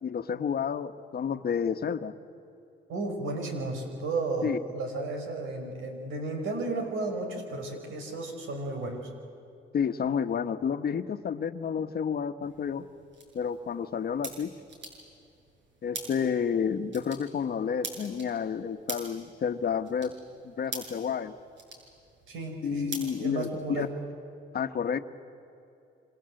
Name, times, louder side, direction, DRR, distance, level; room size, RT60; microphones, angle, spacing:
voice 1, 0.0-2.1 4.4-4.6 9.7-12.9 13.3-14.5 15.8-20.1 20.4-21.4 22.6-23.9 24.5-25.0, left 7 dB, 50° left, 9 dB, 1.3 m, -30 dB
voice 2, 2.9-9.0 22.3-23.9, right 2 dB, 85° right, 4 dB, 5.6 m, -33 dB
sound 1, 12.4-23.9, right 2 dB, 60° right, 7.4 m, -45 dB
27.5 x 26.5 x 7.8 m, 2.7 s
cardioid pair, 90°, 20 cm